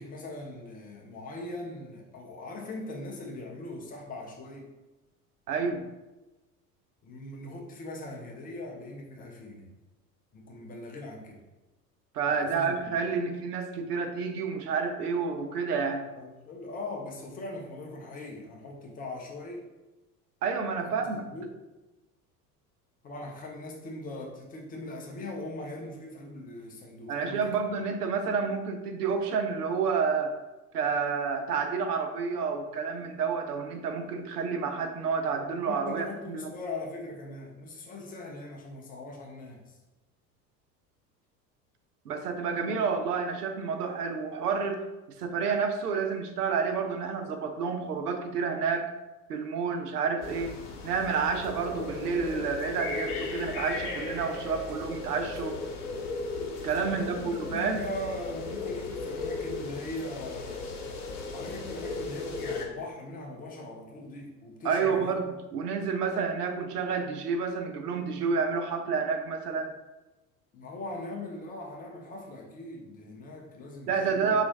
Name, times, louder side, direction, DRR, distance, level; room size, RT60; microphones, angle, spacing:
voice 1, 0.0-4.7 7.0-9.7 10.3-11.4 12.2-13.0 16.1-19.7 20.8-21.5 23.0-27.5 35.7-39.8 42.5-42.8 56.9-60.6 61.3-65.2 70.5-74.4, left 2 dB, 20° left, -1 dB, 0.4 m, -40 dB
voice 2, 5.5-5.8 12.1-16.0 20.4-21.2 27.1-30.3 30.7-36.4 42.1-44.8 45.2-48.9 49.3-50.5 50.8-55.6 56.6-57.8 64.6-69.7 73.9-74.4, right 5 dB, 80° right, 6 dB, 0.5 m, -29 dB
sound 1, 50.2-62.7, left 3 dB, 70° left, 0.8 m, -36 dB
4.2 x 2.4 x 2.6 m, 1.1 s
figure-of-eight pair, 70°, 47 cm